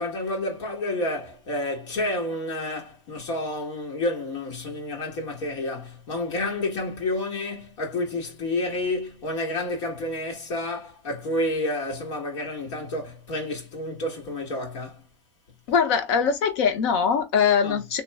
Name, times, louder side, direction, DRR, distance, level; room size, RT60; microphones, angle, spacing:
voice 1, 0.0-15.0 17.6-17.8, left 1 dB, 90° left, 1.8 m, -30 dB
voice 2, 15.7-18.0, left 6 dB, 65° left, 0.9 m, -22 dB
3.0 x 2.1 x 3.5 m
supercardioid pair, 165°, 15 cm